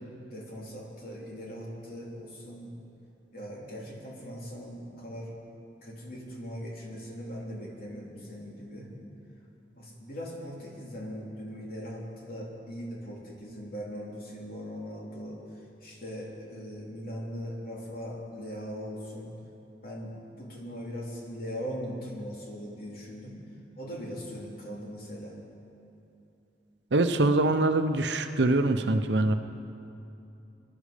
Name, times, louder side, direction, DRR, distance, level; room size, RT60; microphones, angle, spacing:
voice 1, 0.3-2.7 3.3-5.3 5.8-8.9 9.8-19.3 19.8-23.4 23.8-25.4, equal, 55° left, -3 dB, 3.0 m, -40 dB
voice 2, 26.9-29.3, right 2 dB, 75° right, 8 dB, 0.8 m, -24 dB
23.0 x 11.5 x 5.1 m, 2.7 s
head